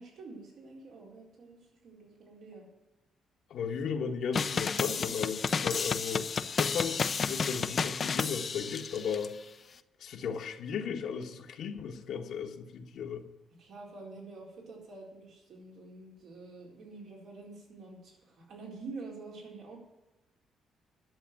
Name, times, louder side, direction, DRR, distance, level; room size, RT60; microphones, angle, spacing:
voice 1, 0.0-2.7 13.6-19.8, right 3 dB, 70° right, -2 dB, 4.3 m, -47 dB
voice 2, 3.5-6.3 6.6-9.4 10.0-13.2, left 6 dB, 75° left, 2 dB, 1.4 m, -35 dB
sound 1, 4.3-9.3, left 5 dB, 45° left, 0.6 m, -31 dB
11.0 x 7.2 x 9.4 m, 1.0 s
cardioid pair, 90°, 0 cm